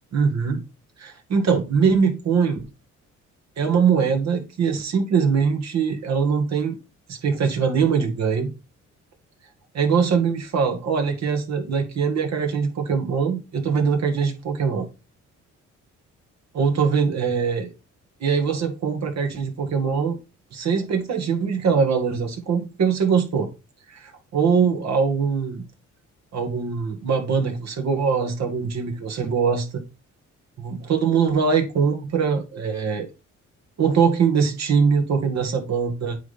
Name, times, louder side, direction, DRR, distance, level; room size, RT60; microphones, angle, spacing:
voice 1, 0.1-0.6 1.0-2.6 3.6-6.8 7.1-8.5 9.7-14.9 16.5-17.7 18.2-20.2 20.5-23.5 23.9-25.6 26.3-29.8 30.6-33.1 33.8-36.2, right 6 dB, 60° right, 2.1 m, -22 dB
9.1 x 3.6 x 4.3 m
cardioid pair, 90°, 30 cm